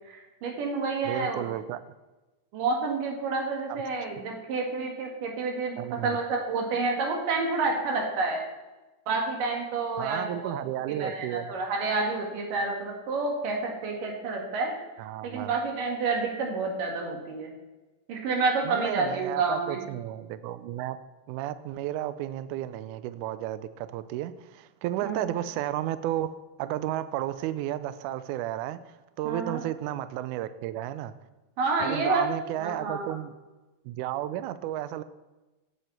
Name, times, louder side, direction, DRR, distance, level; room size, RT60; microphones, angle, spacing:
voice 1, 0.1-1.5 2.5-8.4 9.1-10.5 10.9-14.7 15.2-17.5 18.1-19.8 25.0-25.2 29.2-29.6 31.6-32.3 32.6-33.2, right 3 dB, 70° right, 1 dB, 3.3 m, -29 dB
voice 2, 1.0-1.8 5.8-6.2 10.0-11.5 15.0-15.5 18.6-21.0 21.3-26.3 26.6-31.1 31.8-33.3 33.8-35.0, right 13 dB, 90° right, 14 dB, 1.7 m, -33 dB
8.1 x 7.4 x 7.8 m, 1.1 s
omnidirectional pair, 4.2 m